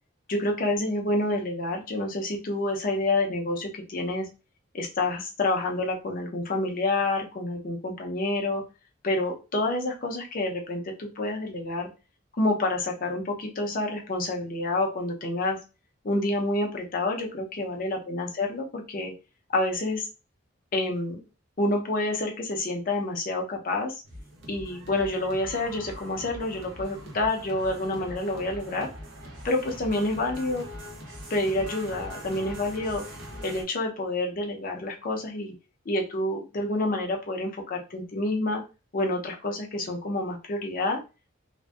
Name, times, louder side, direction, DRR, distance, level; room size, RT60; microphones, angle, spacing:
voice 1, 0.3-4.3 4.7-8.6 9.0-11.9 12.4-15.6 16.0-19.1 19.5-20.1 20.7-21.2 21.6-23.9 24.5-28.9 29.4-30.6 31.3-33.0 33.4-35.5 35.9-38.6 38.9-41.0, left 2 dB, 45° left, 2 dB, 0.5 m, -28 dB
sound 1, 24.0-33.6, equal, 60° right, 0.7 m, -42 dB
2.5 x 2.1 x 2.2 m, 0.31 s
head